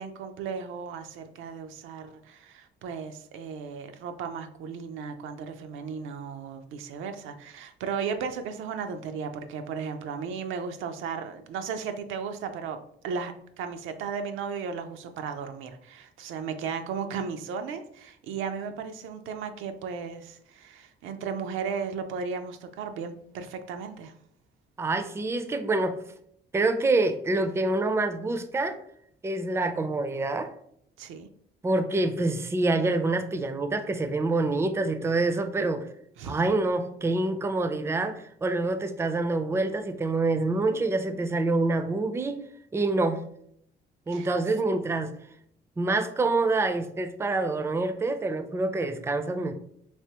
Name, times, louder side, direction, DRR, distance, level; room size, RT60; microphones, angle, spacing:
voice 1, 0.0-12.8 13.0-24.1 31.0-31.3 36.2-36.4 44.1-44.3, right 6 dB, 85° right, 7 dB, 0.4 m, -35 dB
voice 2, 24.8-26.0 26.5-28.8 29.2-30.5 31.6-35.9 36.2-42.4 42.7-43.2 44.1-45.1 45.8-49.5, right 2 dB, 15° right, 8 dB, 0.3 m, -26 dB
3.3 x 2.8 x 2.8 m, 0.68 s
cardioid pair, 90°, 20 cm